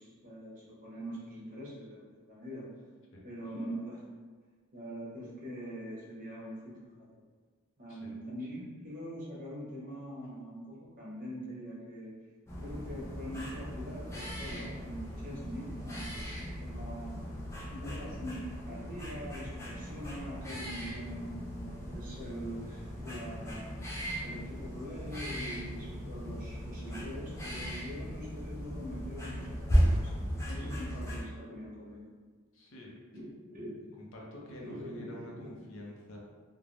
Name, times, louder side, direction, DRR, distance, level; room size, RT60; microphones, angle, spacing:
voice 1, 0.0-2.7 3.2-4.0 4.7-7.1 7.8-12.1 12.6-17.3 17.7-23.9 24.2-32.1 33.1-34.0 34.5-35.7, equal, 40° right, -6 dB, 0.7 m, -43 dB
sound 1, 12.5-31.2, equal, 15° left, 0.4 m, -36 dB
voice 2, 32.5-32.9 34.0-36.2, left 1 dB, 60° left, -2 dB, 0.5 m, -48 dB
3.2 x 2.1 x 2.5 m, 1.5 s
head